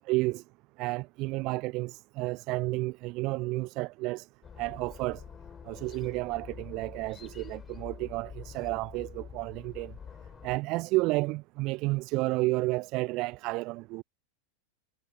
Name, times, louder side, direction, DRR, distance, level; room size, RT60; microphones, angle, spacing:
voice 1, 0.1-0.4 0.8-4.3 4.6-5.2 5.7-9.9 10.4-14.0, right 22 dB, 40° right, 0.4 m, -31 dB
sound 1, 4.4-10.6, left 7 dB, 20° left, 4.7 m, -46 dB
figure-of-eight pair, 90°, 0 cm